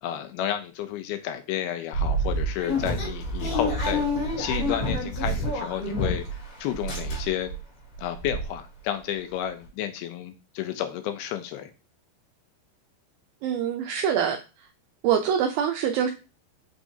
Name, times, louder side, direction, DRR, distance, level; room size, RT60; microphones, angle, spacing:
voice 1, 0.0-4.1 4.4-6.3 6.6-7.5 8.0-11.7, left 11 dB, 80° left, 9 dB, 2.3 m, -31 dB
sound 1, 1.9-6.4 6.7-7.5 7.9-8.0 8.2-8.4, equal, 55° left, 3.3 m, -27 dB
voice 2, 13.4-14.4 15.0-16.1, right 8 dB, 90° right, 4 dB, 2.0 m, -24 dB
6.3 x 6.0 x 2.7 m, 0.32 s
omnidirectional pair, 4.8 m